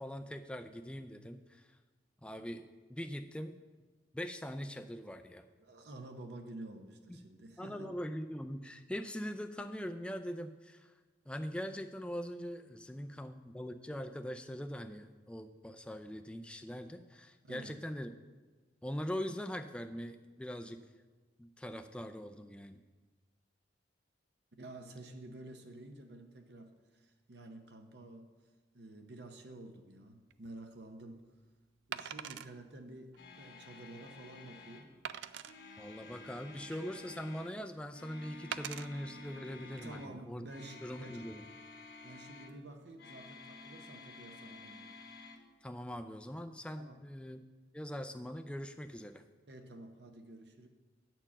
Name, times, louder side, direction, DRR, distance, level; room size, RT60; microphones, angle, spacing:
voice 1, 0.0-1.7 2.2-3.5 4.1-5.5 7.1-7.2 7.6-10.9 11.3-18.1 18.8-20.8 21.4-22.8 35.8-40.5 40.8-41.4 45.6-47.4 47.7-49.2, equal, 5° left, 7 dB, 0.3 m, -42 dB
voice 2, 5.6-7.9 17.4-17.8 24.6-28.3 28.7-31.2 31.9-34.9 39.8-41.1 42.0-44.9 46.8-47.0 49.5-50.7, right 2 dB, 60° right, 5 dB, 0.8 m, -50 dB
Wood, 30.3-30.5 31.9-32.5 33.1-33.2 33.7-33.8 35.0-35.5 36.3-37.1 38.5-38.9 39.6-39.8, right 9 dB, 80° right, 0.3 m, -42 dB
sound 1, 33.2-34.9 35.4-37.5 37.9-40.2 40.4-42.5 43.0-45.4, left 3 dB, 60° left, 1.1 m, -52 dB
10.0 x 4.5 x 7.2 m, 1.3 s
head